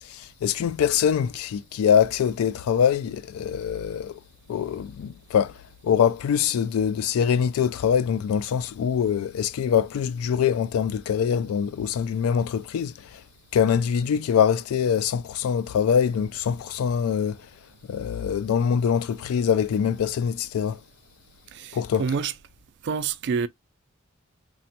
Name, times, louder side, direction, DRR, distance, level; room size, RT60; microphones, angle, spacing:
voice 1, 0.0-4.2 4.5-5.5 5.8-13.2 13.5-17.4 17.9-20.8 21.7-22.0, left 7 dB, 80° left, 0.3 m, -24 dB
voice 2, 21.5-22.3 22.8-23.5, right 6 dB, 55° right, 0.3 m, -27 dB
3.3 x 2.1 x 2.7 m
head